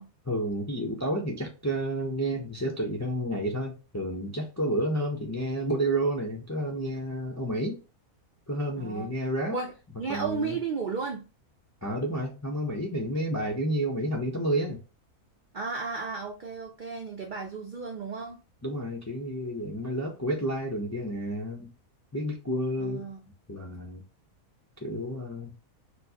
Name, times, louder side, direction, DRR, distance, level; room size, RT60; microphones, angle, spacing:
voice 1, 0.3-7.8 8.5-9.5 10.1-10.6 11.8-14.8 18.6-21.7 22.1-23.0 23.5-24.0 24.8-25.5, right 1 dB, 25° left, 0.3 m, -30 dB
voice 2, 8.8-9.1 9.5-9.7 10.0-11.3 15.5-18.4 22.8-23.2, right 5 dB, 65° right, 0.4 m, -33 dB
4.3 x 2.1 x 2.7 m
omnidirectional pair, 1.5 m